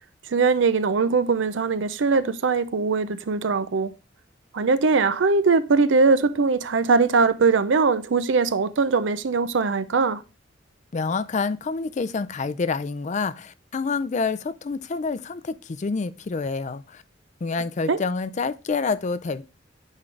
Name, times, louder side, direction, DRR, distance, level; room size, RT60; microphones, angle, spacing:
voice 1, 0.3-3.9 4.5-10.2 17.9-18.0, right 4 dB, 80° right, 0.6 m, -21 dB
voice 2, 10.9-17.0 17.4-19.4, left 4 dB, 40° left, 0.4 m, -27 dB
9.6 x 3.8 x 3.3 m
head